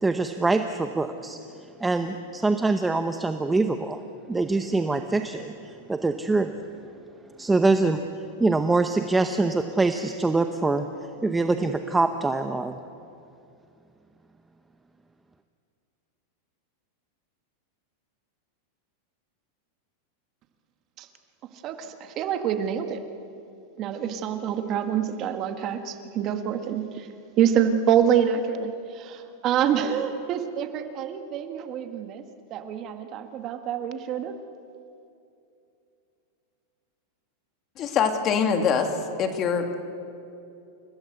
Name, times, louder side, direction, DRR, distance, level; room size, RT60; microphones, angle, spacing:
voice 1, 0.0-1.4 1.8-4.0 4.3-6.6 7.4-10.9 11.2-12.8, right 3 dB, 10° right, 7 dB, 0.9 m, -24 dB
voice 2, 21.6-23.0 23.8-27.1 27.4-32.2 32.5-34.3, right 8 dB, 35° right, 7 dB, 1.7 m, -26 dB
voice 3, 37.8-38.9 39.2-39.8, left 6 dB, 35° left, 6 dB, 2.6 m, -23 dB
29.5 x 16.5 x 8.1 m, 2.6 s
supercardioid pair, 140°, 0 cm